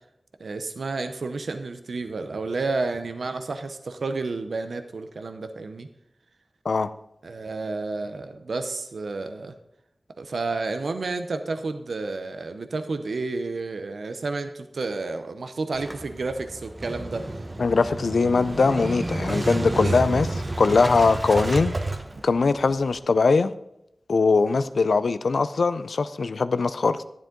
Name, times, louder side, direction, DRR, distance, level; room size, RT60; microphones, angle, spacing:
voice 1, 0.4-5.9 7.2-9.5 10.2-17.2 19.8-20.0 22.1-22.2, right 3 dB, 85° right, 8 dB, 0.7 m, -31 dB
Motorcycle / Engine starting, 15.8-23.0, right 2 dB, 45° right, 1.2 m, -30 dB
voice 2, 17.6-21.7 22.2-23.5 24.1-27.0, left 4 dB, 90° left, 13 dB, 0.4 m, -21 dB
12.0 x 10.5 x 3.8 m, 0.82 s
cardioid pair, 40°, 0 cm